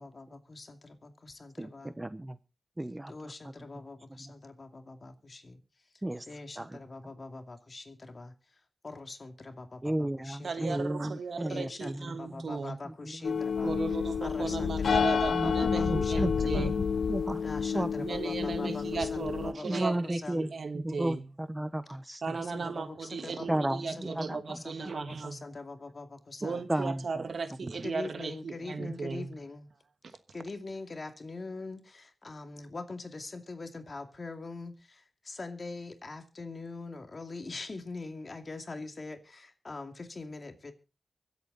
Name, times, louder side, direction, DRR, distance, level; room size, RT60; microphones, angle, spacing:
voice 1, 0.0-2.0 3.1-5.6 6.3-8.3 8.8-10.9 11.5-13.8 14.2-16.7 17.4-20.5 22.3-26.6 27.8-29.7 30.3-40.7, left 3 dB, 50° left, 2.4 m, -43 dB
voice 2, 1.6-2.4 2.8-3.1 6.0-6.3 6.6-6.7 9.8-12.5 12.9-13.7 15.3-17.4 17.7-17.9 18.4-18.7 19.6-20.5 20.7-22.2 23.5-24.6 26.7-27.0 27.6-27.7, right 1 dB, 20° right, 1.0 m, -34 dB
voice 3, 10.4-12.8 13.6-16.7 18.0-21.3 22.2-25.4 26.4-29.3, right 4 dB, 75° right, 1.5 m, -36 dB
sound 1, 13.2-19.5, left 6 dB, 90° left, 1.0 m, -29 dB
24.0 x 8.4 x 4.0 m
cardioid pair, 65°, 0 cm